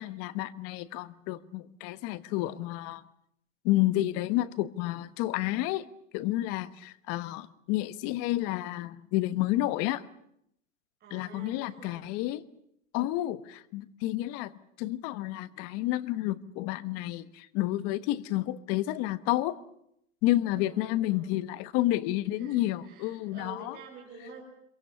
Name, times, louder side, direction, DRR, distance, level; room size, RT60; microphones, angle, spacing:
voice 1, 0.0-3.0 3.6-5.9 6.1-10.0 11.1-12.4 12.9-14.5 14.8-19.6 20.2-23.8, left 16 dB, 40° left, 1.2 m, -30 dB
voice 2, 11.0-12.1 20.5-21.3 22.3-24.4, right 5 dB, 25° right, 6.1 m, -48 dB
27.0 x 23.5 x 7.0 m
hypercardioid pair, 140°, 39 cm